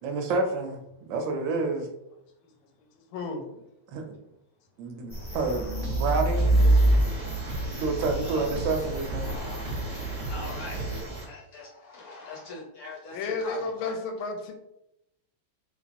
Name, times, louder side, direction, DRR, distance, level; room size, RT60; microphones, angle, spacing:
voice 1, 0.0-0.8 1.1-1.9 3.9-4.2 4.8-6.8 7.8-9.4, right 3 dB, 75° right, 4 dB, 1.2 m, -29 dB
voice 2, 3.1-3.4 13.1-14.5, left 3 dB, 90° left, 4 dB, 1.4 m, -32 dB
sound 1, 5.1-11.2, right 2 dB, 5° right, 1.0 m, -27 dB
voice 3, 5.2-6.1 8.2-8.5 9.2-11.0 11.3-13.9, left 3 dB, 60° left, -3 dB, 1.0 m, -43 dB
sound 2, 5.7-11.0, right 2 dB, 50° right, 0.9 m, -35 dB
sound 3, 6.3-11.3, right 2 dB, 35° right, 0.6 m, -40 dB
3.3 x 3.0 x 2.5 m, 0.84 s
omnidirectional pair, 2.2 m